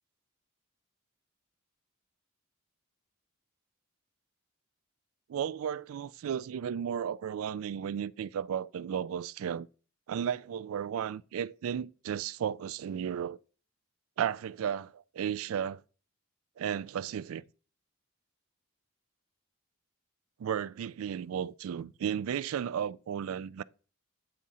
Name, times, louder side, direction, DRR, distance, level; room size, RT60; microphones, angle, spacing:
voice 1, 5.3-9.7 10.1-13.4 14.2-15.8 16.6-17.4 20.4-23.6, right 8 dB, 75° right, 0.3 m, -34 dB
8.7 x 3.7 x 4.1 m
head